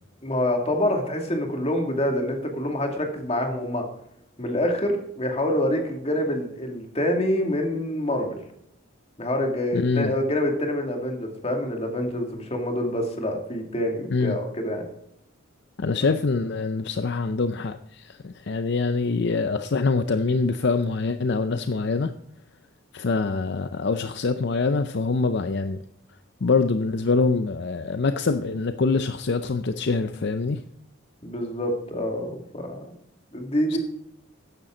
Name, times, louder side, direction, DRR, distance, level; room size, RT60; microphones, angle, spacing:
voice 1, 0.2-3.8 4.4-8.4 9.2-14.8 31.2-32.8 33.3-33.8, left 1 dB, 30° left, 3 dB, 2.4 m, -26 dB
voice 2, 9.7-10.1 14.1-14.4 15.8-22.1 22.9-25.8 26.4-30.6 33.7-33.8, left 4 dB, 55° left, 9 dB, 0.6 m, -24 dB
14.0 x 10.5 x 3.9 m, 0.73 s
head